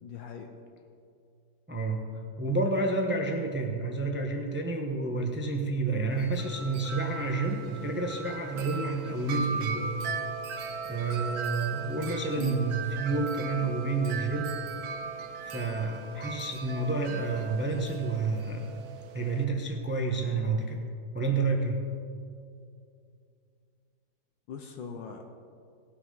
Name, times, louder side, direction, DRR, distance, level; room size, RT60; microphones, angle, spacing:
voice 1, 0.0-0.5 12.4-12.6 24.5-25.4, left 6 dB, 80° left, 4 dB, 1.5 m, -40 dB
voice 2, 1.7-2.0 2.4-9.9 10.9-14.6 15.4-18.7 19.1-20.8 21.1-21.8, right 3 dB, 10° right, 2 dB, 0.5 m, -29 dB
Wind chime, 6.1-19.4, right 5 dB, 60° right, 1.1 m, -38 dB
17.5 x 6.9 x 5.4 m, 2.4 s
omnidirectional pair, 2.1 m